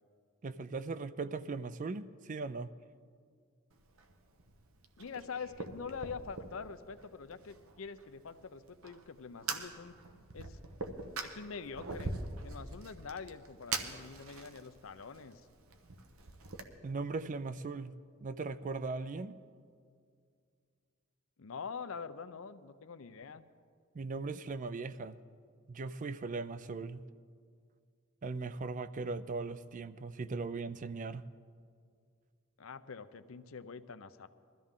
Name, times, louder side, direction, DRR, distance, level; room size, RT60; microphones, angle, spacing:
voice 1, 0.4-2.7 16.8-19.4 23.9-25.2 25.7-27.1 28.2-31.3, right 3 dB, 40° right, 14 dB, 0.4 m, -39 dB
Fire, 3.7-16.6, right 3 dB, 90° right, 1.1 m, -44 dB
voice 2, 5.0-9.9 10.3-10.6 11.2-12.2 12.4-15.5 21.4-23.4 32.6-34.3, left 5 dB, 75° left, 12 dB, 0.6 m, -45 dB
21.0 x 13.5 x 3.7 m, 2.2 s
head